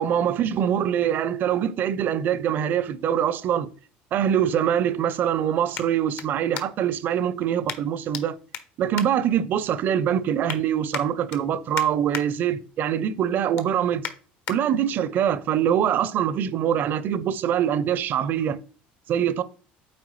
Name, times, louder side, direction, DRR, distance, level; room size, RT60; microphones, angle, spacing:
voice 1, 0.0-3.7 4.1-8.3 8.8-14.0 14.5-18.6 19.1-19.4, right 9 dB, 50° right, 0.6 m, -24 dB
sound 1, 3.9-7.0 7.7-8.2 8.5-9.8 10.2-10.6 10.9-12.3 12.7-12.9 13.3-14.6 15.1-15.2, left 9 dB, 65° left, 1.0 m, -37 dB
8.4 x 4.4 x 3.1 m
cardioid pair, 125°, 4 cm